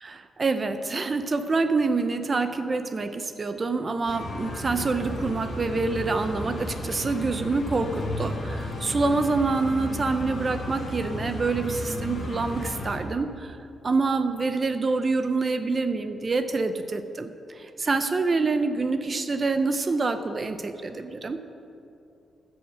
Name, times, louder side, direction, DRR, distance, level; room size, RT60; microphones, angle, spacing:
voice 1, 0.0-13.6 13.8-21.4, right 3 dB, 30° right, 9 dB, 0.5 m, -26 dB
sound 1, 4.1-13.0, left 1 dB, 35° left, 1.7 m, -33 dB
14.0 x 5.7 x 7.5 m, 2.7 s
wide cardioid pair, 165°, 0 cm